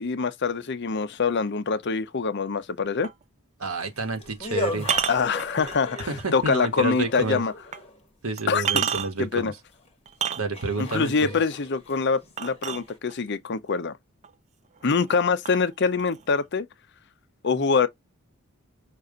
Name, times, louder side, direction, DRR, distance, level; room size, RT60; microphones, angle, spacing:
voice 1, 0.0-3.1 5.1-7.5 8.5-8.9 9.2-9.5 10.8-14.0 14.8-16.7 17.4-17.9, left 5 dB, 50° left, 0.6 m, -25 dB
sound 1, 3.0-3.2 4.8-6.2 6.8-6.9 7.7-7.8 8.4-9.3 10.1-10.8 12.4-13.3 14.2-14.3 14.8-15.2 15.4-16.4, right 8 dB, 30° right, 0.4 m, -29 dB
voice 2, 3.6-4.9 6.1-7.4 8.2-9.5 10.4-11.4, right 3 dB, 75° right, 1.3 m, -29 dB
sound 2, 3.7-8.0 9.8-9.9 10.5-13.0, left 3 dB, 25° left, 1.2 m, -36 dB
5.5 x 2.5 x 3.7 m
head